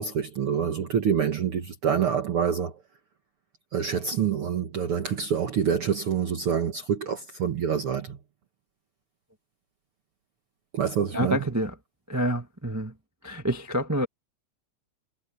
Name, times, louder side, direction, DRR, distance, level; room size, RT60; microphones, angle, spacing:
voice 1, 0.0-2.7 3.7-8.2 10.7-11.4, right 7 dB, 55° right, 2.0 m, -26 dB
voice 2, 11.1-11.7 12.1-12.9 13.2-14.1, equal, 20° right, 0.4 m, -27 dB
omnidirectional pair, 3.4 m